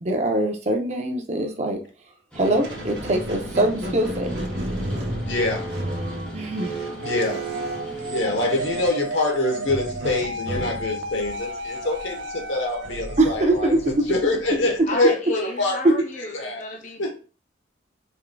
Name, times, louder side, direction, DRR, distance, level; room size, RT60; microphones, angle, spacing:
voice 1, 0.0-1.8 2.4-4.3 6.3-6.7 13.2-13.9, right 1 dB, 35° right, 0.6 m, -23 dB
sound 1, 2.3-8.9, left 1 dB, 5° left, 1.1 m, -40 dB
Squeak, 2.4-8.7 9.7-14.8, right 1 dB, 60° right, 1.0 m, -33 dB
voice 2, 5.3-5.7 7.0-7.4 8.1-15.8 16.3-16.6 17.0-17.1, left 2 dB, 80° left, 1.1 m, -25 dB
sound 2, 7.0-14.5, right 1 dB, 80° right, 0.5 m, -33 dB
voice 3, 14.9-17.1, left 1 dB, 40° left, 0.5 m, -33 dB
4.5 x 3.6 x 2.2 m
head